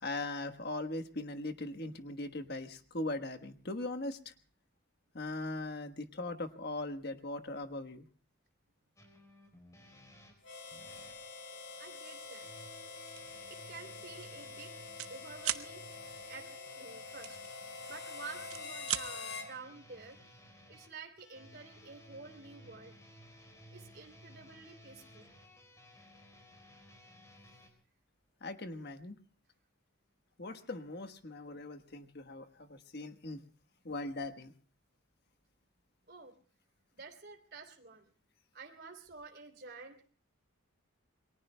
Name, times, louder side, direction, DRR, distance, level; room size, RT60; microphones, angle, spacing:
voice 1, 0.0-4.3 5.1-8.0 28.4-29.2 30.4-33.4 33.8-34.5, left 2 dB, 50° left, 8 dB, 1.3 m, -40 dB
sound 1, 9.0-11.2 12.2-27.7, equal, 15° left, 3.9 m, -57 dB
Harmonica, 10.4-19.5, left 4 dB, 70° left, 3.8 m, -46 dB
voice 2, 11.5-12.5 13.5-14.7 15.1-15.8 16.3-16.5 16.7-17.4 17.9-20.4 20.7-22.9 23.7-25.3 36.1-36.3 36.9-38.1 38.5-39.9, right 4 dB, 50° right, 5 dB, 3.2 m, -50 dB
sound 2, 13.1-13.3 13.8-14.0 14.2-15.1 15.4-15.7 17.2-18.0 18.4-19.1, right 12 dB, 85° right, 0.9 m, -37 dB
28.5 x 22.5 x 2.2 m, 0.40 s
head